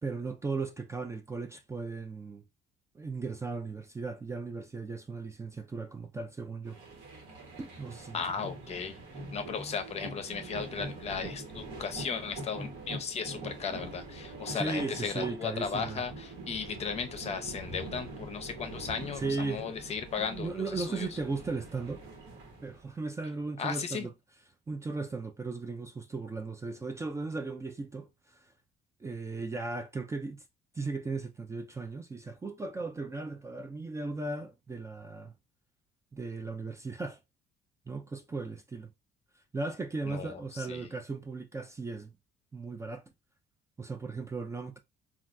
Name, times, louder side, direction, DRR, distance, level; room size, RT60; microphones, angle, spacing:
voice 1, 0.0-2.4 2.9-6.8 7.6-8.2 14.5-16.0 19.2-19.6 20.3-22.0 22.6-24.1 24.7-28.5 29.0-30.4 30.7-35.3 36.1-37.2 37.9-38.9 39.5-42.1 42.5-43.0 43.8-44.8, right 3 dB, 15° right, 0.4 m, -37 dB
sound 1, 6.7-22.9, right 2 dB, 90° right, 1.2 m, -44 dB
voice 2, 8.1-9.0 9.3-21.1 23.6-24.1 40.0-40.9, left 6 dB, 40° left, 0.6 m, -36 dB
3.3 x 2.3 x 2.5 m
cardioid pair, 110°, 17 cm